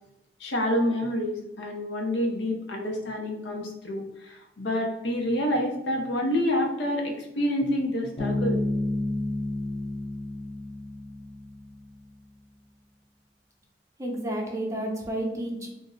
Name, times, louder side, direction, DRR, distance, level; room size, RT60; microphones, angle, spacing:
voice 1, 0.4-8.6, left 1 dB, 90° left, 2 dB, 0.6 m, -28 dB
Bass guitar, 8.2-11.8, left 1 dB, 20° left, 0.7 m, -30 dB
voice 2, 14.0-15.7, right 1 dB, 20° right, -1 dB, 0.6 m, -31 dB
2.5 x 2.0 x 3.6 m, 0.90 s
head